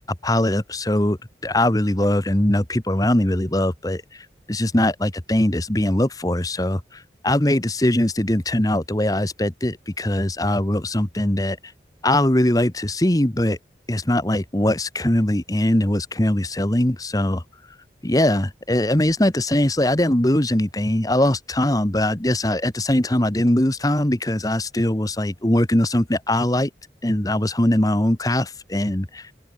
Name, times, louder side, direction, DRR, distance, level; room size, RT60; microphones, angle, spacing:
voice 1, 0.2-1.2 1.4-11.6 12.0-13.6 13.9-17.4 18.0-26.7 27.0-29.3, left 1 dB, 20° left, 1.3 m, -21 dB
open air
head